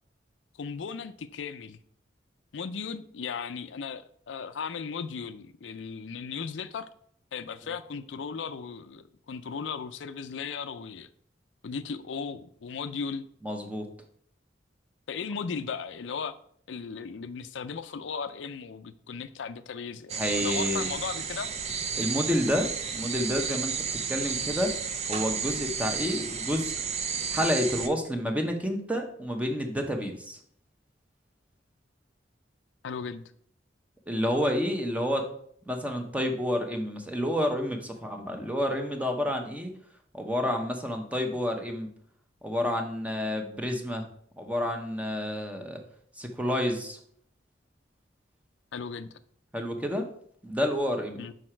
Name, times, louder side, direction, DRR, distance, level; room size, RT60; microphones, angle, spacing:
voice 1, 0.6-1.8 2.5-6.9 7.3-11.1 11.6-13.2 15.1-16.4 16.7-21.5 32.8-33.2 48.7-49.1 51.2-51.3, left 5 dB, 90° left, 0.5 m, -36 dB
voice 2, 13.4-13.9 20.2-20.9 21.9-23.7 24.1-24.7 25.1-26.7 27.3-30.4 34.1-35.3 35.7-39.7 40.1-41.9 42.4-44.0 44.4-45.8 46.2-47.0 49.5-50.1 50.4-51.3, equal, 10° right, 0.8 m, -29 dB
sound 1, 20.1-27.9, right 6 dB, 35° right, 0.6 m, -32 dB
6.3 x 4.9 x 4.4 m
head